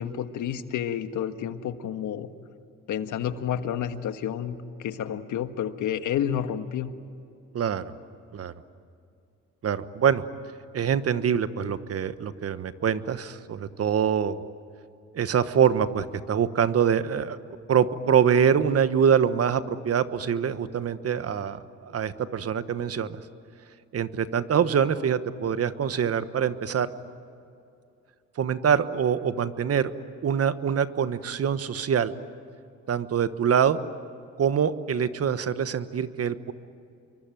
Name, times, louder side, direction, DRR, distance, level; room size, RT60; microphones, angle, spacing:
voice 1, 0.0-2.3 2.9-6.9, left 9 dB, 80° left, 9 dB, 1.6 m, -30 dB
voice 2, 7.5-7.9 8.3-8.5 9.6-10.2 10.7-14.4 15.1-17.4 17.7-23.2 23.9-26.9 28.4-29.9 30.2-32.1 32.9-33.8 34.4-36.5, right 7 dB, 50° right, 12 dB, 1.3 m, -24 dB
27.5 x 23.5 x 9.2 m, 2.6 s
cardioid pair, 90°, 30 cm